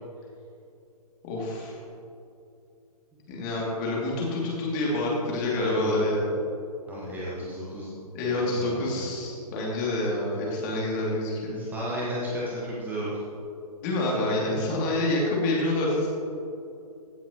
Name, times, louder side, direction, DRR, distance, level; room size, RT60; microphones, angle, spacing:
voice 1, 1.2-1.8 3.3-6.3 8.1-11.6 13.8-16.1, left 2 dB, 30° left, -4 dB, 2.5 m, -27 dB
voice 2, 5.5-6.1 6.9-7.9 8.5-9.1 11.5-13.2 14.9-15.0, equal, 10° right, -7 dB, 1.3 m, -34 dB
15.5 x 7.3 x 3.0 m, 2.7 s
figure-of-eight pair, 135°, 20 cm